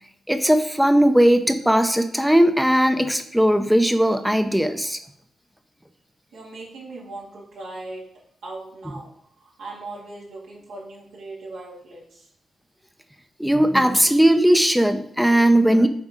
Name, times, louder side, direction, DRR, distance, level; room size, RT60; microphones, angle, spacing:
voice 1, 0.3-5.0 13.4-15.9, right 1 dB, 5° right, 8 dB, 0.6 m, -18 dB
voice 2, 6.3-8.0 8.4-9.1 9.4-12.3, right 2 dB, 85° right, -5 dB, 2.3 m, -38 dB
7.2 x 4.3 x 3.7 m, 0.67 s
supercardioid pair, 55°, 0 cm